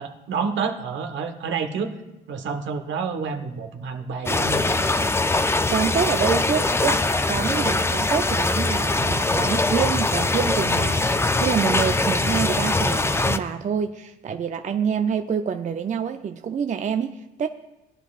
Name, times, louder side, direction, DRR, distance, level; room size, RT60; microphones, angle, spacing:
voice 1, 0.0-1.9 2.3-5.2, right 5 dB, 70° right, 6 dB, 1.2 m, -29 dB
sound 1, 4.3-13.4, left 2 dB, 10° left, 0.5 m, -22 dB
voice 2, 5.7-17.5, right 7 dB, 40° right, 7 dB, 0.5 m, -26 dB
18.5 x 10.0 x 2.4 m, 0.98 s
cardioid pair, 90°, 20 cm